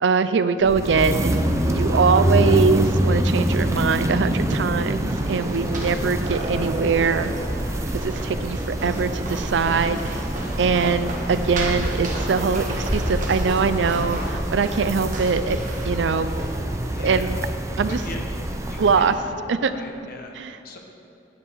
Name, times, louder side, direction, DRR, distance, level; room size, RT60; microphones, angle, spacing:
voice 1, 0.0-7.3 8.0-10.2 10.6-15.6 15.8-16.3 17.0-17.4 17.8-18.0 18.8-19.1 19.5-19.7 20.4-20.5, right 5 dB, 80° right, 12 dB, 0.5 m, -22 dB
sound 1, 0.6-19.2, right 1 dB, 15° right, 0.6 m, -26 dB
sound 2, 4.9-16.9, right 1 dB, 45° right, 1.5 m, -32 dB
voice 2, 10.6-10.9 16.8-17.4 17.9-18.2 18.7-20.8, left 2 dB, 55° left, 2 dB, 1.2 m, -39 dB
9.7 x 8.9 x 4.7 m, 2.6 s
head